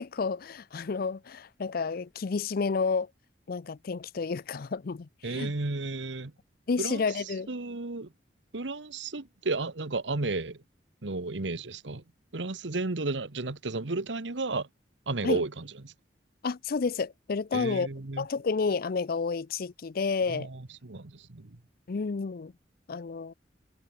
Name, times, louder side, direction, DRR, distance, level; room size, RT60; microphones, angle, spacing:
voice 1, 0.0-3.1 3.5-5.5 6.7-7.5 15.2-15.4 16.4-17.9 18.2-20.5 21.9-22.5 22.9-23.3, left 4 dB, 55° left, 0.5 m, -30 dB
voice 2, 5.2-6.3 6.8-8.1 8.5-10.6 11.0-12.0 12.3-14.7 15.1-15.9 17.5-18.3 20.3-21.6, right 3 dB, 80° right, 1.3 m, -33 dB
head